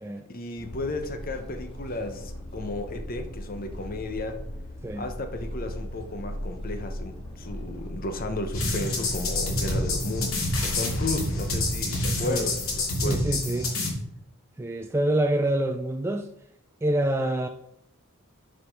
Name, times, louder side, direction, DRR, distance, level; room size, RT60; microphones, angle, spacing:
voice 1, 0.3-4.4 5.0-13.2, left 2 dB, 40° left, 0.9 m, -34 dB
sound 1, 0.6-12.8, equal, 25° left, 1.7 m, -38 dB
sound 2, 8.5-13.9, left 2 dB, 70° left, 3.1 m, -28 dB
voice 2, 13.0-13.7 14.6-16.3 16.8-17.5, right 1 dB, 10° right, 0.3 m, -26 dB
8.4 x 5.1 x 5.8 m
head